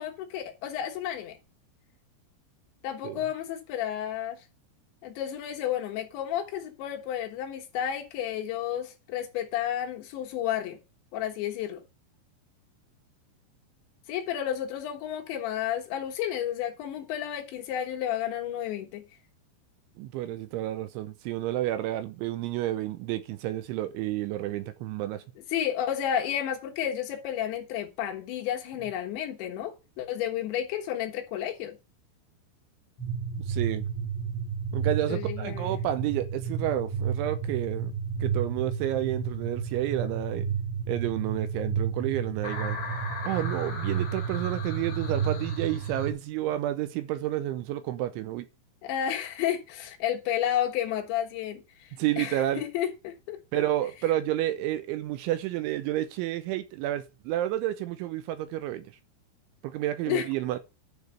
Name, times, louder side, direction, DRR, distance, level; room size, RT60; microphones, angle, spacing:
voice 1, 0.0-1.4 2.8-4.4 5.0-10.8 11.1-11.8 14.1-19.0 25.5-31.8 35.1-35.8 48.8-53.6 60.1-60.3, left 10 dB, 70° left, 3.4 m, -31 dB
voice 2, 20.0-25.2 33.4-33.9 34.7-37.9 38.2-40.5 40.9-42.8 43.2-48.5 52.0-52.6 53.5-58.9 59.6-60.6, right 13 dB, 80° right, 3.0 m, -30 dB
sound 1, 33.0-46.1, right 6 dB, 40° left, 2.7 m, -31 dB
10.5 x 5.0 x 6.7 m
omnidirectional pair, 5.7 m